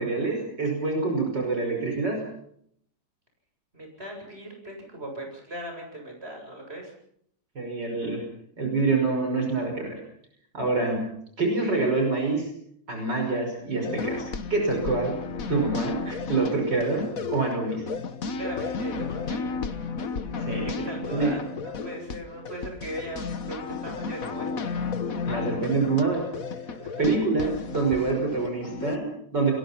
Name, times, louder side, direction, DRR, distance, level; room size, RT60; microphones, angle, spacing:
voice 1, 0.0-2.3 7.5-8.3 8.6-10.0 10.5-12.5 12.9-15.2 15.5-17.9 20.4-21.4 25.2-26.3 27.0-29.5, right 3 dB, 65° right, 2 dB, 6.5 m, -26 dB
voice 2, 3.7-6.9 18.3-19.5 20.6-24.8 26.7-27.1, right 1 dB, 30° right, 2 dB, 8.4 m, -39 dB
sound 1, 13.8-29.0, left 4 dB, 50° left, 1.6 m, -33 dB
29.5 x 22.0 x 5.9 m, 0.68 s
omnidirectional pair, 2.0 m